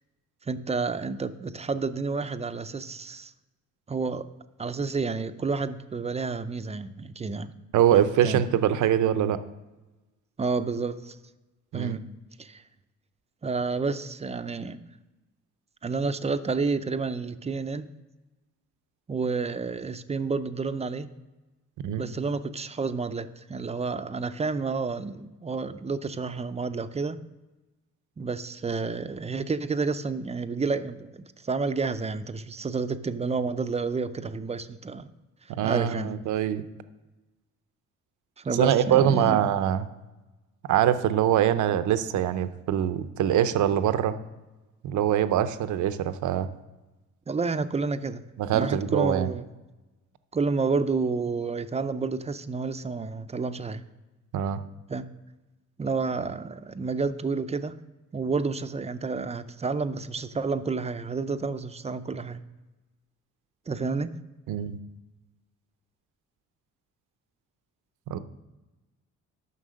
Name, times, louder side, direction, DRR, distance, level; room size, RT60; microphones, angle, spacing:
voice 1, 0.5-3.3 3.9-4.3 4.6-7.5 7.9-8.4 10.4-11.2 11.7-12.0 12.4-12.6 13.4-14.8 15.8-17.9 19.1-21.1 22.0-27.2 28.2-35.1 35.6-36.1 38.4-39.4 47.3-48.2 48.5-49.5 50.3-53.8 54.9-55.0 55.8-57.8 58.1-62.4 63.7-64.1, right 4 dB, 20° right, 11 dB, 0.5 m, -30 dB
voice 2, 7.7-9.4 11.7-12.0 21.8-22.0 35.5-36.6 38.6-39.9 40.7-44.1 44.8-46.5 48.4-49.3 54.3-54.6 64.5-64.8 68.1-68.2, right 10 dB, 75° right, 12 dB, 0.7 m, -23 dB
9.7 x 6.0 x 6.3 m, 1.1 s
cardioid pair, 90°, 30 cm